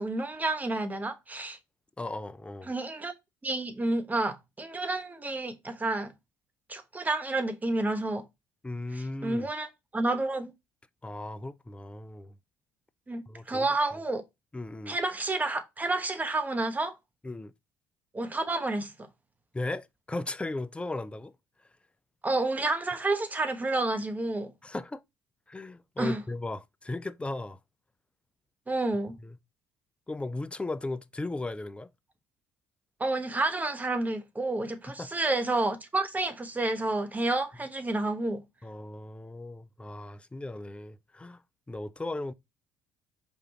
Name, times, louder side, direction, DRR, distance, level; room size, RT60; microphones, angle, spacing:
voice 1, 0.0-1.6 2.7-3.1 3.4-6.1 6.7-8.2 8.9-10.5 13.1-14.2 14.9-16.9 18.1-18.9 22.2-24.5 26.0-26.2 28.7-29.1 33.0-38.4, right 2 dB, 20° right, 1.2 m, -30 dB
voice 2, 2.0-2.7 8.6-9.5 11.0-12.3 13.3-13.7 14.5-15.0 17.2-17.5 19.5-21.3 24.6-25.0 25.5-27.6 29.2-29.4 30.1-31.9 34.9-35.1 38.6-41.4 41.7-42.3, left 2 dB, 15° left, 0.5 m, -36 dB
4.7 x 3.6 x 2.9 m
hypercardioid pair, 60°, 8 cm